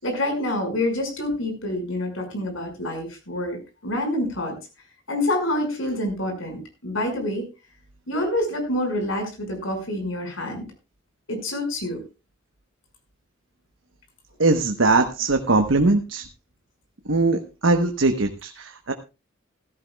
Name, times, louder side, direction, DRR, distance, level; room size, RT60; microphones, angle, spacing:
voice 1, 0.0-4.6 5.1-7.4 8.1-10.7 11.3-12.0, left 1 dB, 80° left, 4 dB, 5.5 m, -27 dB
voice 2, 14.4-16.2 17.1-18.9, right 3 dB, 80° right, 5 dB, 1.1 m, -21 dB
16.5 x 15.0 x 2.3 m, 0.29 s
head